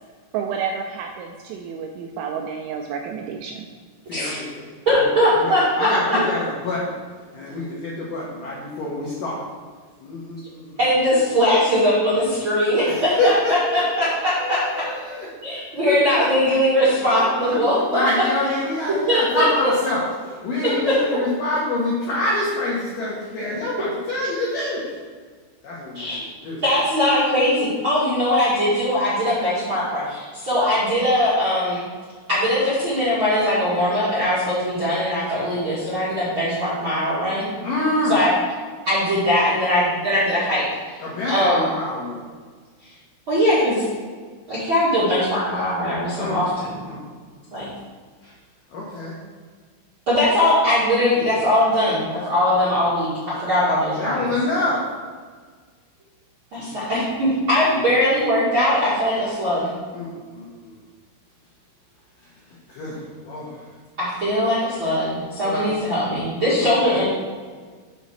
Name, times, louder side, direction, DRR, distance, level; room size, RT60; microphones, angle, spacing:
voice 1, 0.3-3.7, right 6 dB, 85° right, 3 dB, 2.7 m, -30 dB
voice 2, 4.1-4.5 4.9-5.1 5.4-6.9 7.3-9.4 10.0-10.8 12.8-14.1 14.4-16.2 17.5-17.6 17.9-24.9 25.6-26.6 37.6-38.2 41.0-42.2 46.2-46.4 46.8-47.0 47.4-47.5 47.8-47.9 48.2-48.3 48.7-49.2 53.9-54.8 56.6-56.7 59.9-60.7 62.7-63.6 65.4-65.7 66.4-67.0, left 2 dB, 85° left, -5 dB, 1.9 m, -26 dB
voice 3, 4.8-6.2 10.8-14.9 15.4-18.2 19.1-19.7 20.9-21.0 25.9-26.2 26.6-31.8 32.3-37.5 38.1-38.3 38.8-41.0 41.3-41.7 43.3-43.8 44.5-46.8 47.5-47.6 50.1-54.3 56.5-59.7 64.0-67.0, left 1 dB, 65° right, -9 dB, 1.2 m, -20 dB
7.6 x 4.2 x 6.3 m, 1.6 s
omnidirectional pair, 5.8 m